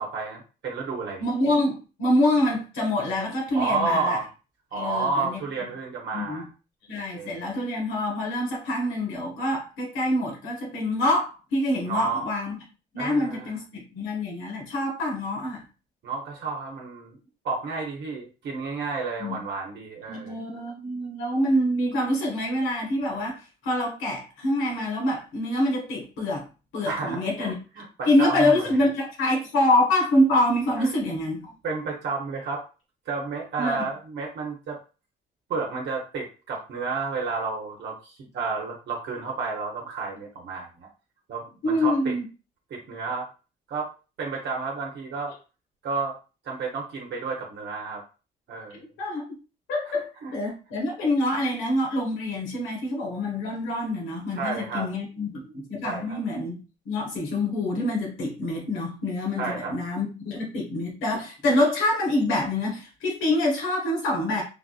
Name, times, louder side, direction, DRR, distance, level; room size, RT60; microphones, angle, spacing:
voice 1, 0.0-1.2 3.5-4.3 4.7-6.5 7.1-7.5 11.8-12.3 13.0-13.5 16.0-17.2 17.4-20.4 26.9-28.7 30.8-30.9 31.6-32.6 33.1-34.8 35.5-40.9 41.3-42.1 42.7-43.3 43.7-43.9 44.2-45.3 45.8-46.2 46.4-48.0 48.5-48.8 49.9-50.3 54.3-54.9 55.3-55.6 55.8-56.2 59.4-59.7, right 4 dB, 65° right, -1 dB, 0.8 m, -31 dB
voice 2, 1.2-4.2 4.7-5.4 6.1-6.4 6.9-12.5 12.9-15.6 19.2-19.4 20.1-26.5 26.7-27.6 28.1-31.5 33.6-33.9 41.6-42.2 49.0-49.2 49.7-56.6 56.8-64.4, left 1 dB, 90° left, -1 dB, 1.2 m, -26 dB
3.4 x 2.5 x 2.3 m, 0.33 s
cardioid pair, 90°, 20 cm